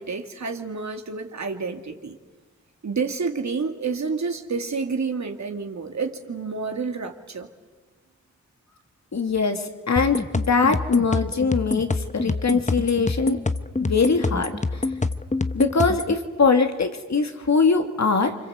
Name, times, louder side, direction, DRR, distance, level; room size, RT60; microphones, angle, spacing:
voice 1, 0.0-2.1 2.8-7.5, right 4 dB, 65° right, 5 dB, 2.4 m, -29 dB
voice 2, 9.1-13.4 13.8-14.8 15.5-18.4, left 4 dB, 65° left, 6 dB, 2.6 m, -22 dB
sound 1, 10.0-16.1, left 3 dB, 25° left, 1.0 m, -26 dB
29.0 x 25.5 x 8.1 m, 1.3 s
wide cardioid pair, 75°, 30 cm